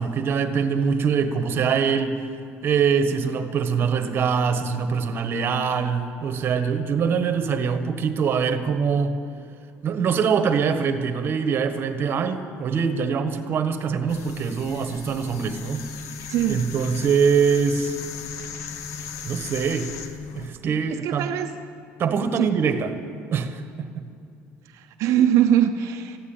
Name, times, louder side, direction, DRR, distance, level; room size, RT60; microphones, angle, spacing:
voice 1, 0.0-2.2 2.6-9.2 9.8-15.8 16.5-18.0 19.2-19.9 20.3-21.3 22.0-22.9 23.3-24.1, right 6 dB, 40° right, 8 dB, 1.3 m, -23 dB
sound 1, 14.1-20.5, left 6 dB, 70° left, 1.1 m, -36 dB
voice 2, 16.3-16.6 21.0-21.5 22.4-22.5 24.7-26.2, right 10 dB, 65° right, 6 dB, 0.7 m, -21 dB
14.5 x 9.7 x 8.8 m, 2.5 s
cardioid pair, 130°, 5 cm